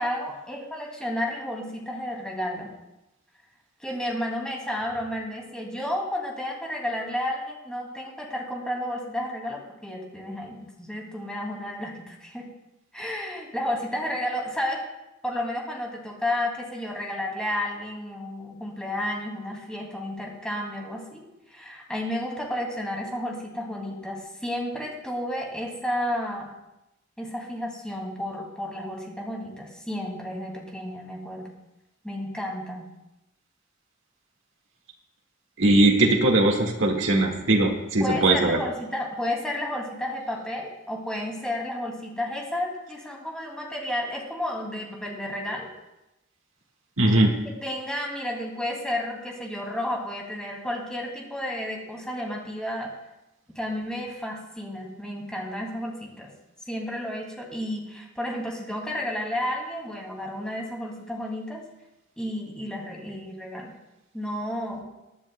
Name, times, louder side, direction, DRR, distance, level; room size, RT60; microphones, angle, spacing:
voice 1, 0.0-2.7 3.8-12.5 12.9-14.8 15.2-26.5 27.2-31.5 32.0-32.9 38.0-45.7 47.4-52.9 53.5-56.3 56.6-61.6 62.2-63.7 64.1-64.8, left 1 dB, 5° left, -2 dB, 2.4 m, -32 dB
voice 2, 35.6-38.6 47.0-47.3, right 2 dB, 85° right, -1 dB, 1.8 m, -20 dB
22.5 x 9.8 x 2.2 m, 0.93 s
head